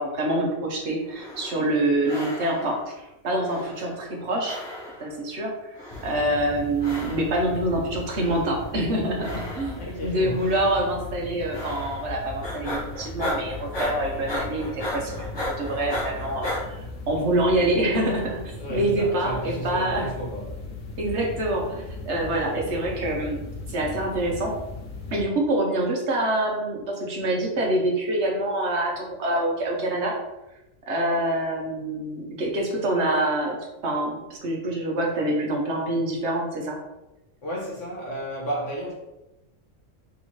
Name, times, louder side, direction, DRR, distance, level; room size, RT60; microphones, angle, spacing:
voice 1, 0.0-2.9 3.2-4.6 5.0-5.5 6.0-18.4 18.7-20.1 21.0-23.4 23.7-24.5 25.1-30.1 30.9-33.6 33.8-36.8, right 1 dB, 60° right, -1 dB, 1.1 m, -26 dB
sound 1, 1.0-1.8 2.0-2.9 3.4-4.2 4.4-5.2 5.7-6.4 6.8-7.5 8.0-8.7 9.2-10.0 10.4-10.8 11.5-12.1 12.4-16.6, left 1 dB, 25° left, 0.7 m, -35 dB
sound 2, 5.9-25.2, left 2 dB, 80° left, 1.2 m, -38 dB
voice 2, 9.7-10.4 18.6-20.5 37.4-38.9, equal, 65° left, -4 dB, 1.7 m, -32 dB
3.6 x 3.0 x 4.2 m, 0.98 s
omnidirectional pair, 1.4 m